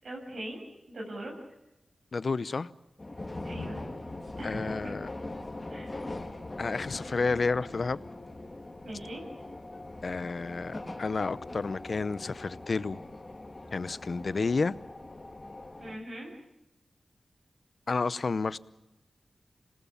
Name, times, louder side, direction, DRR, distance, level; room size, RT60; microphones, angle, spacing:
voice 1, 0.0-1.3 3.4-3.8 4.3-5.0 5.7-6.0 8.8-9.2 15.8-16.3, right 1 dB, 70° right, 7.2 m, -41 dB
voice 2, 2.1-2.7 4.4-5.1 6.6-8.0 10.0-13.0 13.7-14.7 17.9-18.6, left 4 dB, 60° left, 0.8 m, -30 dB
sound 1, 3.0-16.0, left 2 dB, 30° left, 3.2 m, -41 dB
27.0 x 19.5 x 7.1 m
cardioid pair, 60°, 0 cm